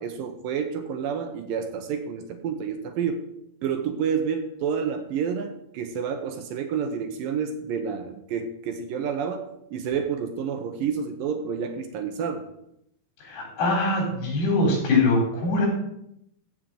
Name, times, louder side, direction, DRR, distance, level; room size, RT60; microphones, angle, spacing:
voice 1, 0.0-3.2 3.6-12.5, right 7 dB, 75° right, 7 dB, 2.4 m, -29 dB
voice 2, 13.2-15.7, left 2 dB, 80° left, -1 dB, 6.1 m, -23 dB
15.5 x 5.2 x 7.7 m, 0.79 s
omnidirectional pair, 4.6 m